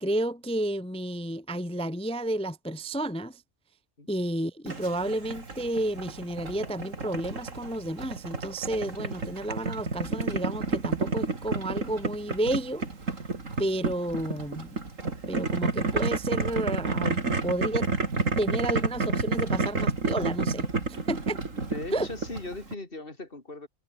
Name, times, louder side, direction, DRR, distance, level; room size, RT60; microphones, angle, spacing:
voice 1, 0.0-3.4 4.1-12.9 13.6-14.8 15.3-17.9 18.4-20.7 21.1-21.4 21.9-22.1, right 1 dB, 10° left, 0.3 m, -31 dB
Boiling, 4.7-22.7, right 3 dB, 85° right, 3.5 m, -30 dB
voice 2, 21.5-23.7, left 2 dB, 45° left, 4.3 m, -39 dB
omnidirectional pair, 1.3 m